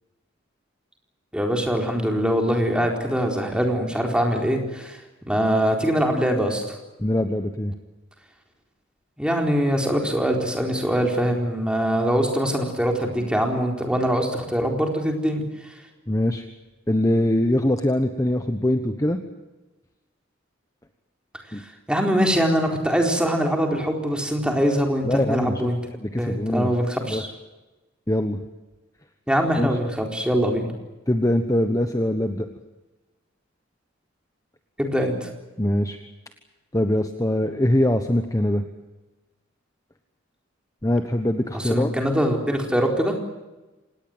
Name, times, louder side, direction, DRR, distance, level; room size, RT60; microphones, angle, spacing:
voice 1, 1.3-5.0 5.3-6.8 9.2-15.4 21.9-25.8 26.2-27.3 29.3-30.7 34.8-35.3 41.5-43.2, equal, 5° right, 2 dB, 4.1 m, -23 dB
voice 2, 7.0-7.7 16.1-16.4 16.9-19.2 21.5-21.6 25.0-25.6 26.0-26.7 27.1-27.2 28.1-28.4 29.6-29.7 31.1-32.5 35.6-36.0 36.7-38.6 40.8-41.9, left 1 dB, 15° left, 7 dB, 1.2 m, -22 dB
26.5 x 19.5 x 7.9 m, 1.1 s
head